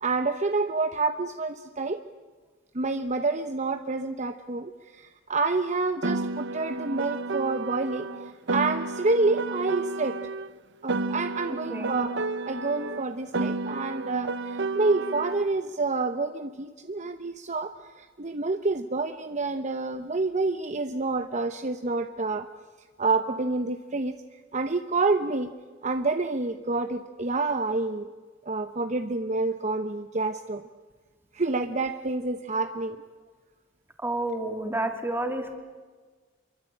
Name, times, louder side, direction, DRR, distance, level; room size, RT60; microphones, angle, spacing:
voice 1, 0.0-2.0 2.7-8.1 8.5-10.2 10.8-22.5 23.0-24.1 24.5-25.5 25.8-28.1 28.5-30.7 31.3-33.0, right 3 dB, 40° right, 8 dB, 1.0 m, -28 dB
Piano, 6.0-10.5 10.9-15.5, right 3 dB, 65° right, 0.9 m, -31 dB
voice 2, 34.0-35.5, right 1 dB, 10° right, 4 dB, 3.1 m, -30 dB
27.0 x 23.5 x 8.7 m, 1.4 s
head